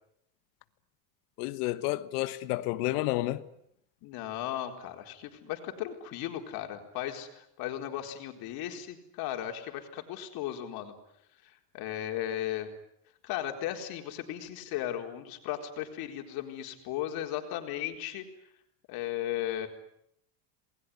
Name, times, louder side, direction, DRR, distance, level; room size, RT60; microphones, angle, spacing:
voice 1, 1.4-3.4, left 17 dB, 75° left, 1.4 m, -30 dB
voice 2, 4.0-10.9 11.4-12.7 13.2-18.2 18.9-19.7, left 12 dB, 50° left, 4.3 m, -36 dB
28.5 x 21.0 x 9.7 m
cardioid pair, 170°, 47 cm